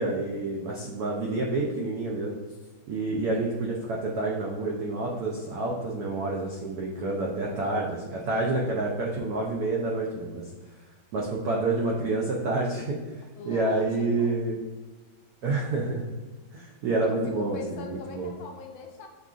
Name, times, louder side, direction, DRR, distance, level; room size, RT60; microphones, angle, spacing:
voice 1, 0.0-2.4 2.9-10.5 11.1-13.0 13.5-14.5 15.4-16.0 16.5-18.3, right 2 dB, 90° right, -2 dB, 0.8 m, -28 dB
voice 2, 13.4-14.4 17.0-19.1, left 4 dB, 80° left, 2 dB, 1.4 m, -42 dB
6.6 x 2.4 x 2.4 m, 1.2 s
omnidirectional pair, 2.2 m